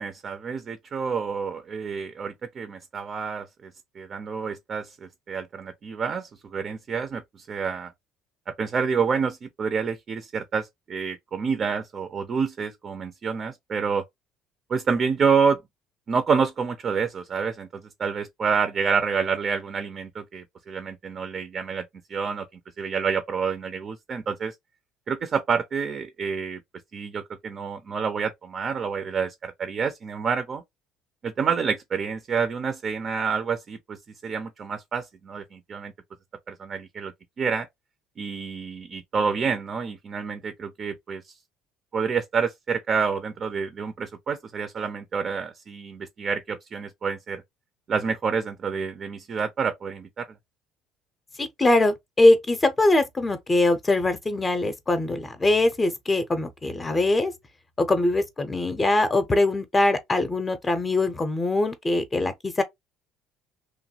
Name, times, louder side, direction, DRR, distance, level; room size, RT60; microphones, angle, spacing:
voice 1, 0.0-7.9 8.6-14.0 14.7-15.6 16.1-24.5 25.1-26.6 26.9-30.6 31.2-34.0 34.2-35.9 36.5-37.7 38.2-41.2 41.9-47.4 47.9-50.3, right 6 dB, 40° right, 0.5 m, -28 dB
voice 2, 51.4-57.3 57.8-62.6, left 2 dB, 25° left, 0.6 m, -22 dB
3.0 x 2.2 x 2.7 m
supercardioid pair, 95°, 0 cm